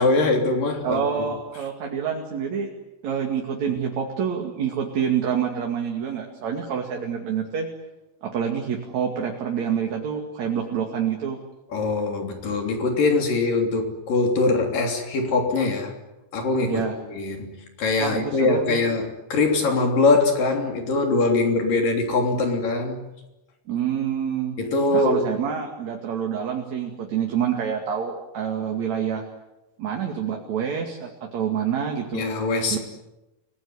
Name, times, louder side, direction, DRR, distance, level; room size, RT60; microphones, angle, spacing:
voice 1, 0.0-1.3 11.7-15.9 16.3-23.0 24.6-25.3 32.1-32.8, left 3 dB, 55° left, 3 dB, 4.7 m, -22 dB
voice 2, 0.8-2.7 3.0-7.7 8.2-11.4 16.7-16.9 18.0-18.8 23.7-24.6 24.9-29.2 29.8-32.2 32.7-32.8, right 7 dB, 45° right, 1 dB, 3.2 m, -27 dB
30.0 x 19.0 x 9.8 m, 1.0 s
omnidirectional pair, 5.0 m